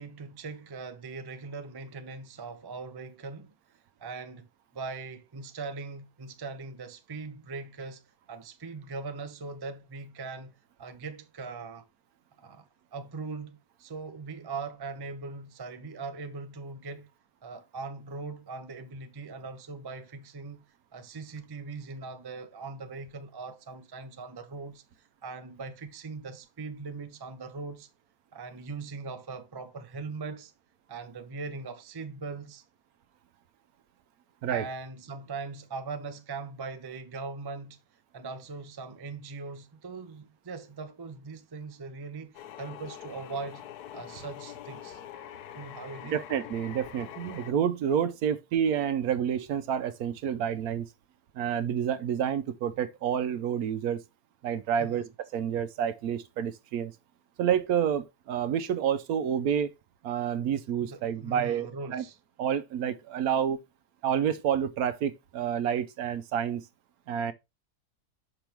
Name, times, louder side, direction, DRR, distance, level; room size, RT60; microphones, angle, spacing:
voice 1, 0.0-3.5 4.0-4.5 4.7-8.0 8.3-10.5 10.8-11.9 12.4-17.1 17.4-20.6 20.9-27.9 28.3-30.5 30.9-32.6 34.5-37.8 38.1-43.6 43.9-45.0 45.5-46.1 54.8-55.1 60.8-62.2, right 4 dB, 30° right, 0.4 m, -40 dB
sound 1, 42.3-47.5, left 11 dB, 85° left, 1.2 m, -44 dB
voice 2, 46.1-50.9 51.3-54.0 54.4-55.0 55.3-56.9 57.4-59.7 60.0-62.0 62.4-63.6 64.0-66.6 67.1-67.3, right 8 dB, 75° right, 1.1 m, -29 dB
6.1 x 5.9 x 3.3 m
omnidirectional pair, 1.7 m